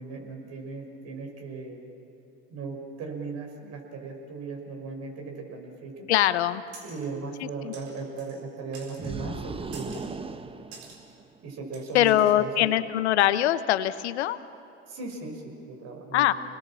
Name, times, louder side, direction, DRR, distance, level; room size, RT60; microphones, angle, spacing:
voice 1, 0.0-1.8 2.5-6.1 6.8-10.0 11.4-12.9 14.9-16.3, right 4 dB, 50° right, 2 dB, 5.6 m, -37 dB
voice 2, 6.1-6.6 7.4-7.7 11.9-14.4 16.1-16.3, left 13 dB, 85° left, 13 dB, 1.0 m, -23 dB
sound 1, 6.7-7.1 7.7-8.4 8.7-9.2 9.7-10.2 10.7-11.0 11.7-12.3, right 5 dB, 75° right, 4.3 m, -48 dB
sound 2, 9.0-11.5, right 4 dB, 15° right, 1.0 m, -38 dB
28.0 x 20.0 x 7.4 m, 2.8 s
hypercardioid pair, 85°, 33 cm